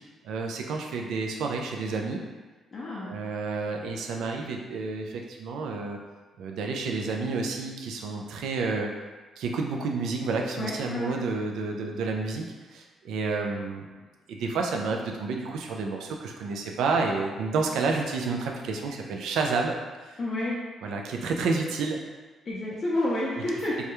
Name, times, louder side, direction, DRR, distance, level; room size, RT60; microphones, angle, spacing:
voice 1, 0.2-2.2 3.0-6.0 6.4-8.9 9.4-13.9 14.3-19.8 20.0-20.2 20.8-22.0 23.4-23.5, right 4 dB, 80° right, 2 dB, 0.3 m, -30 dB
voice 2, 2.7-3.1 10.5-11.2 20.2-20.6 22.5-23.8, left 1 dB, 40° left, -6 dB, 0.5 m, -29 dB
2.2 x 2.1 x 2.9 m, 1.3 s
cardioid pair, 90°, 0 cm